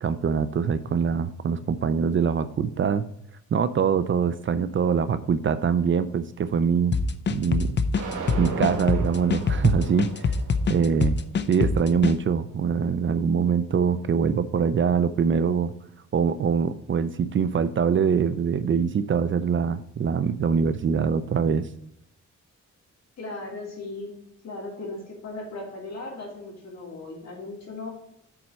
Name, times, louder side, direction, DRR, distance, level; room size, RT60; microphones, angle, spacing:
voice 1, 0.0-3.1 3.5-7.0 7.3-7.8 8.4-10.3 10.7-11.2 11.5-15.7 16.1-21.7, right 6 dB, 40° right, 13 dB, 0.5 m, -23 dB
sound 1, 6.9-12.2, left 4 dB, 40° left, 0.6 m, -25 dB
sound 2, 8.0-14.1, right 4 dB, 80° right, 2.4 m, -38 dB
voice 2, 23.2-24.1 24.4-27.9, left 2 dB, 60° left, -1 dB, 3.2 m, -37 dB
7.0 x 4.3 x 6.2 m, 0.77 s
wide cardioid pair, 130°, 30 cm